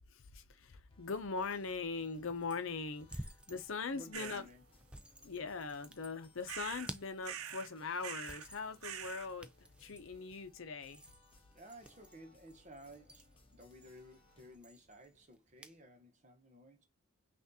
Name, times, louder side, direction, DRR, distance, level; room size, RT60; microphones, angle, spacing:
voice 1, 0.1-4.5 5.2-9.5 9.8-11.0, left 4 dB, 70° left, 0.7 m, -41 dB
sound 1, 0.9-14.6, left 2 dB, 25° left, 0.7 m, -66 dB
sound 2, 1.3-15.8, right 1 dB, 5° right, 0.3 m, -55 dB
voice 2, 3.9-4.6 11.5-16.8, equal, 35° right, 1.1 m, -55 dB
sound 3, 4.1-4.4 6.5-6.9 7.2-7.7 8.0-8.5 8.8-9.3, right 9 dB, 85° right, 0.6 m, -44 dB
5.8 x 2.5 x 2.8 m
head